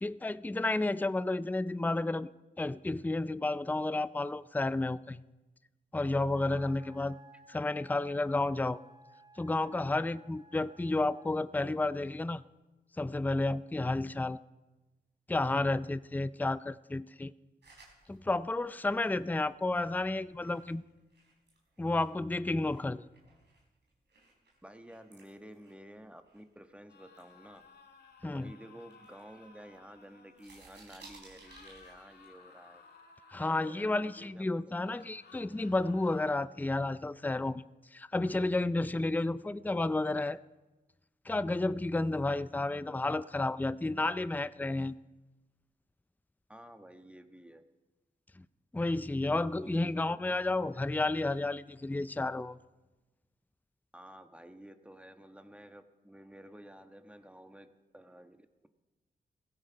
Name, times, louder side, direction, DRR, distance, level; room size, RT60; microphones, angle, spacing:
voice 1, 0.0-2.3 2.6-5.2 5.9-7.2 7.5-8.8 9.4-12.4 13.0-14.4 15.3-17.3 18.1-20.8 21.8-23.0 28.2-28.5 33.3-37.6 37.9-40.4 41.3-45.0 48.4-48.5 48.7-52.6, left 2 dB, 10° left, 16 dB, 0.5 m, -31 dB
Wind instrument woodwind instrument, 6.3-11.5, equal, 25° right, 1.4 m, -58 dB
voice 2, 6.5-6.8 7.3-7.4 24.6-27.6 28.2-32.8 33.4-35.1 46.5-47.6 49.6-50.3 50.7-50.9 53.9-57.7 57.9-58.7, right 1 dB, 5° right, 7 dB, 1.4 m, -52 dB
sound 1, 17.6-22.2 22.6-26.7 27.1-28.3 28.8-30.0 30.3-32.3, right 3 dB, 75° right, 4.2 m, -59 dB
sound 2, 26.9-30.5 31.4-34.3 34.8-36.3, left 5 dB, 65° left, 1.8 m, -58 dB
16.0 x 15.5 x 4.7 m, 1.1 s
cardioid pair, 45°, 18 cm